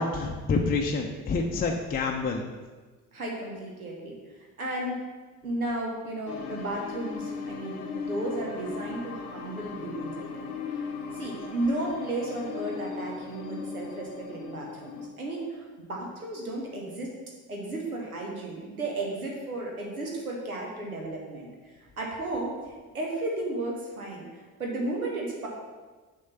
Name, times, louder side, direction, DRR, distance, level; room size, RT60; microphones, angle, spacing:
voice 1, 0.0-2.4, left 4 dB, 20° left, 1 dB, 0.6 m, -27 dB
voice 2, 3.1-5.0 5.4-17.1 17.5-25.5, right 2 dB, 90° right, -1 dB, 0.9 m, -34 dB
sound 1, 6.3-15.1, left 5 dB, 80° left, 0.8 m, -38 dB
6.3 x 3.6 x 5.7 m, 1.3 s
figure-of-eight pair, 50°, 42 cm